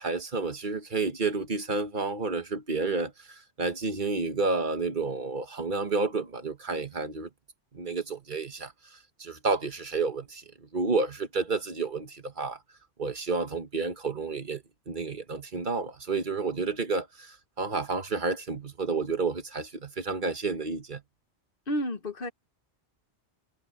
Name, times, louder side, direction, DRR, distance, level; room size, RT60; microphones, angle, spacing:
voice 1, 0.0-7.3 7.7-12.6 13.0-21.0, right 4 dB, 45° right, 1.5 m, -30 dB
voice 2, 21.7-22.3, equal, 55° left, 1.5 m, -30 dB
omnidirectional pair, 1.1 m